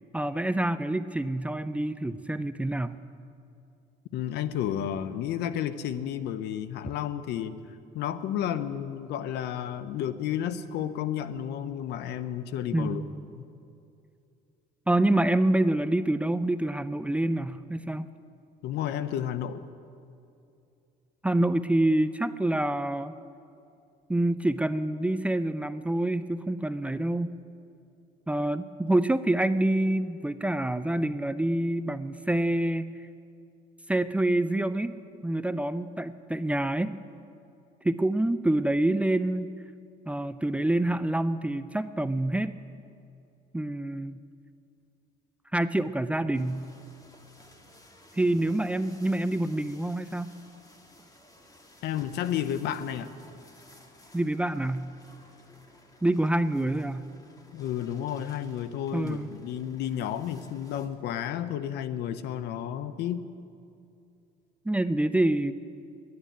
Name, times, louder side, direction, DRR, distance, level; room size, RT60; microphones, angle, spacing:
voice 1, 0.1-3.0 12.7-13.2 14.9-18.1 21.2-23.1 24.1-27.3 28.3-32.9 33.9-37.0 37.8-39.5 40.1-42.6 43.5-44.2 45.5-46.6 48.2-50.3 54.1-54.9 56.0-57.1 58.9-59.3 64.7-65.5, right 1 dB, 10° right, 13 dB, 0.4 m, -27 dB
voice 2, 4.1-7.6 7.9-13.0 13.4-13.5 18.6-19.6 51.8-53.1 57.5-63.3, left 10 dB, 80° left, 13 dB, 0.7 m, -32 dB
sound 1, 46.3-60.9, left 1 dB, 20° left, 1.6 m, -55 dB
11.0 x 9.5 x 9.9 m, 2.6 s
cardioid pair, 110°, 17 cm